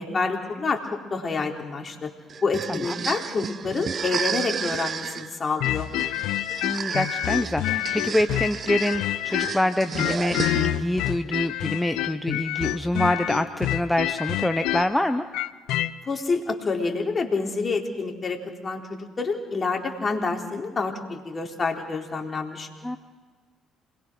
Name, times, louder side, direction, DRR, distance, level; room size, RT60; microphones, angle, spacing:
voice 1, 0.0-2.1 2.4-5.9 16.1-22.7, left 4 dB, 40° left, 3 dB, 3.9 m, -28 dB
sound 1, 2.3-10.9, right 6 dB, 50° right, 1.1 m, -33 dB
sound 2, 5.6-9.7 10.0-15.9, left 14 dB, 75° left, 0.7 m, -27 dB
voice 2, 6.6-15.2 22.8-23.0, left 1 dB, 10° left, 8 dB, 1.1 m, -26 dB
27.5 x 21.0 x 6.4 m, 1.4 s
hypercardioid pair, 60°, 0 cm